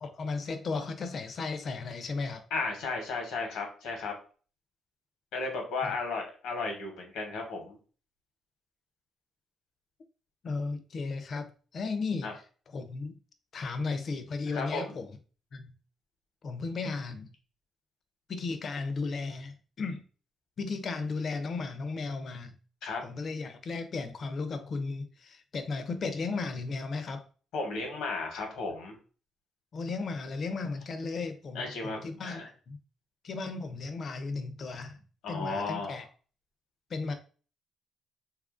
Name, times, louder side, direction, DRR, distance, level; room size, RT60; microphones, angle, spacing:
voice 1, 0.0-2.4 5.8-5.9 10.4-12.3 12.7-13.2 13.5-15.1 15.5-15.7 16.4-17.3 18.3-20.0 20.6-22.5 23.0-27.2 29.7-32.8 33.2-35.0 35.3-36.0 36.9-37.1, left 4 dB, 50° left, 0.5 m, -35 dB
voice 2, 2.5-4.1 5.3-7.8 12.2-12.3 14.5-14.9 22.8-23.0 27.5-29.0 31.5-32.5 35.2-36.0, left 3 dB, 90° left, 0.9 m, -34 dB
2.8 x 2.4 x 2.4 m
cardioid pair, 90°, 0 cm